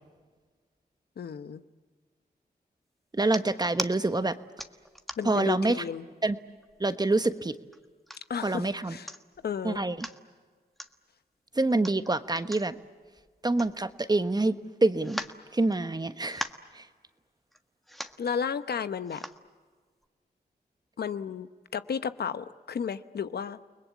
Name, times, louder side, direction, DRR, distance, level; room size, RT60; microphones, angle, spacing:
voice 1, 1.2-1.6 5.2-6.0 8.3-9.1 9.4-9.8 18.2-19.2 21.0-23.6, left 7 dB, 75° left, 12 dB, 0.9 m, -33 dB
voice 2, 3.1-4.4 5.2-5.8 6.2-6.4 6.8-7.5 8.4-9.0 9.6-10.1 11.5-12.8 13.4-14.5 14.8-15.2 15.5-16.5 16.7-16.9, right 2 dB, 25° right, 11 dB, 1.3 m, -26 dB
sound 1, 3.2-3.9 4.6-5.4 6.0-6.1 6.4-7.1 7.7-8.4 8.8-8.9 9.1-9.4 9.8-10.2 10.8-10.9 11.7-14.2 14.5-14.6 15.0-16.0 16.3-16.7 17.5-17.6 17.8-18.2 19.0-19.4 20.0-20.1, equal, ahead, 1.5 m, -39 dB
30.0 x 21.0 x 8.4 m, 1.5 s
cardioid pair, 70°, 17 cm